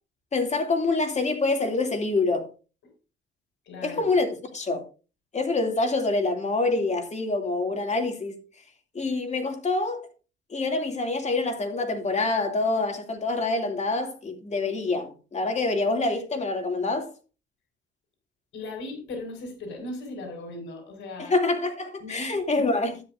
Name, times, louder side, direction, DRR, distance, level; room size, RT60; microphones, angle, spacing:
voice 1, 0.3-2.5 3.8-4.3 4.5-4.8 5.3-8.4 8.9-10.0 10.5-17.1 21.2-23.0, left 3 dB, 35° left, 2.7 m, -26 dB
voice 2, 3.6-4.1 18.5-21.3 22.0-22.4, left 2 dB, 70° left, 5.1 m, -37 dB
12.5 x 9.9 x 2.6 m
cardioid pair, 90°, 20 cm